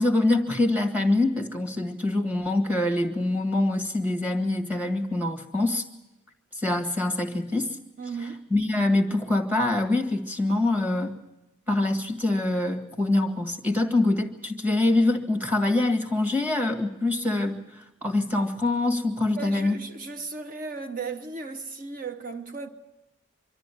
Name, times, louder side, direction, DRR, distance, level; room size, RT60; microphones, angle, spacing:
voice 1, 0.0-5.8 6.6-7.7 8.5-11.2 11.7-17.6 18.0-19.8, left 2 dB, 10° right, 1.7 m, -24 dB
voice 2, 8.0-8.5 19.4-22.7, right 4 dB, 40° right, 1.0 m, -35 dB
24.5 x 13.0 x 9.9 m
head